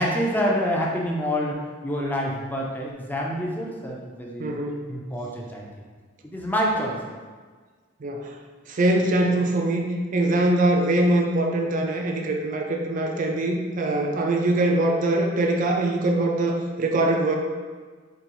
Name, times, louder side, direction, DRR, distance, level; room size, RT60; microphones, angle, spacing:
voice 1, 0.0-4.5 4.9-5.6 6.2-7.2, equal, 10° left, -2 dB, 0.6 m, -27 dB
voice 2, 4.4-4.8 8.0-8.3 8.7-9.9 10.1-17.4, right 1 dB, 45° right, 2 dB, 0.4 m, -23 dB
4.9 x 3.0 x 3.0 m, 1.5 s
head